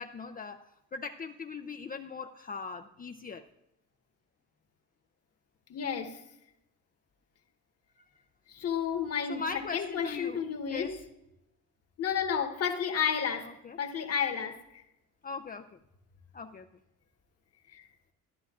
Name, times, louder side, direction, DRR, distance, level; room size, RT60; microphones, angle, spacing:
voice 1, 0.0-3.4 8.0-8.1 9.3-10.4 10.7-11.0 13.6-13.8 15.2-15.7 16.3-16.7, left 5 dB, 30° left, 6 dB, 0.5 m, -40 dB
voice 2, 5.7-6.2 8.5-9.4 9.7-10.9 12.0-13.5 13.8-14.8 17.7-17.8, left 7 dB, 50° left, 6 dB, 1.4 m, -31 dB
13.5 x 11.0 x 2.4 m, 0.86 s
cardioid pair, 90°, 31 cm